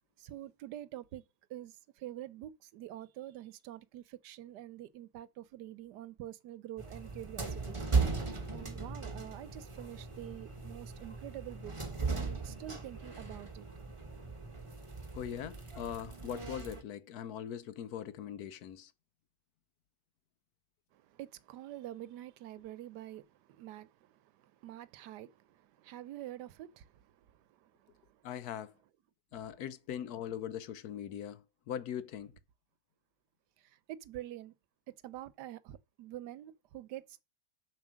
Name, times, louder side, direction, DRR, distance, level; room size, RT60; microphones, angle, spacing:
voice 1, 0.2-1.2 1.5-7.8 8.5-11.7 12.1-13.7 20.9-23.9 24.6-26.9 27.8-27.9 33.9-34.5 35.0-37.2, right 13 dB, 80° right, 1.2 m, -46 dB
sound 1, 6.8-16.8, right 4 dB, 20° right, 1.2 m, -37 dB
voice 2, 15.1-18.9 28.2-28.7 29.3-32.3, left 9 dB, 70° left, 1.1 m, -41 dB
7.2 x 5.5 x 6.2 m
omnidirectional pair, 1.8 m